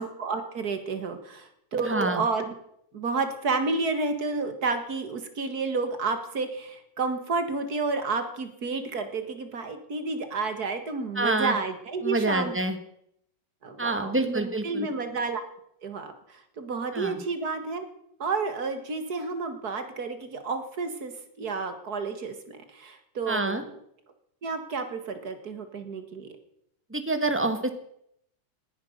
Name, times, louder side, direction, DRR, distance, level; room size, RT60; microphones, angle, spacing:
voice 1, 0.0-2.5 2.9-12.5 13.6-15.4 15.8-16.1 16.6-17.9 18.2-21.1 21.4-23.6 24.4-26.3, right 4 dB, 55° right, 8 dB, 2.1 m, -30 dB
voice 2, 1.8-2.2 11.1-11.6 12.0-12.8 13.8-14.9 16.9-17.2 23.3-23.6 26.9-27.7, right 2 dB, 5° right, 8 dB, 1.3 m, -27 dB
18.5 x 10.5 x 6.6 m, 0.72 s
omnidirectional pair, 2.1 m